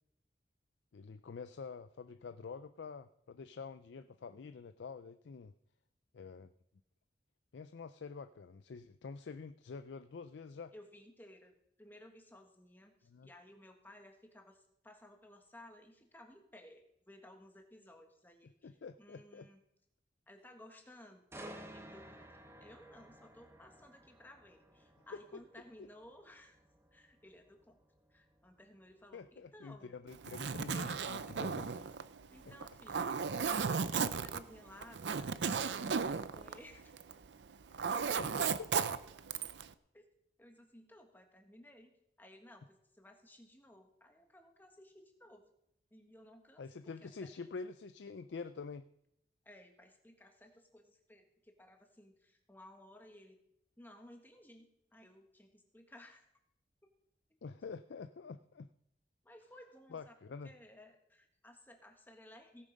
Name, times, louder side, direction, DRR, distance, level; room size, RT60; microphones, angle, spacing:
voice 1, 0.9-5.5 6.1-6.5 7.5-10.7 13.1-13.3 18.6-19.5 25.1-25.4 29.1-31.7 38.2-38.7 46.6-48.9 57.4-58.7 59.9-60.5, left 5 dB, 85° left, 11 dB, 0.4 m, -47 dB
voice 2, 10.7-19.6 20.3-26.6 26.9-27.8 28.1-29.9 30.8-31.0 32.3-35.8 36.1-36.9 39.9-40.0 40.4-45.5 45.9-46.6 47.0-47.5 49.4-53.4 53.8-56.3 59.2-60.2 60.4-62.7, left 1 dB, 10° left, 3 dB, 1.6 m, -58 dB
sound 1, 21.3-35.2 35.6-35.8, right 1 dB, 15° right, 0.9 m, -57 dB
Zipper (clothing), 30.1-37.2 37.5-39.7, right 6 dB, 80° right, 0.5 m, -35 dB
17.0 x 7.6 x 5.2 m, 0.77 s
head